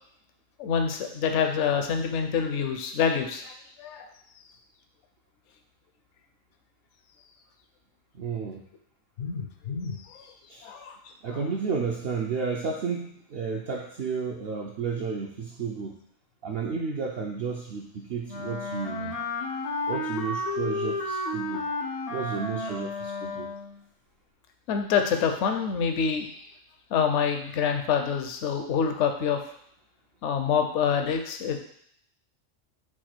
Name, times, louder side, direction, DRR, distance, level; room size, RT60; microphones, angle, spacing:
voice 1, 0.6-3.5 3.8-4.1 9.2-10.3 10.6-11.0 11.3-11.4 24.7-26.3 26.9-29.4 30.2-31.6, left 7 dB, 70° left, 5 dB, 0.9 m, -26 dB
voice 2, 8.1-8.7 10.5-10.7 11.2-16.0 16.4-19.2 19.9-21.6 22.1-23.5, right 5 dB, 60° right, -1 dB, 0.6 m, -32 dB
Wind instrument woodwind instrument, 18.3-23.8, left 2 dB, 55° left, 0.4 m, -32 dB
4.7 x 2.4 x 4.3 m, 0.67 s
omnidirectional pair, 1.3 m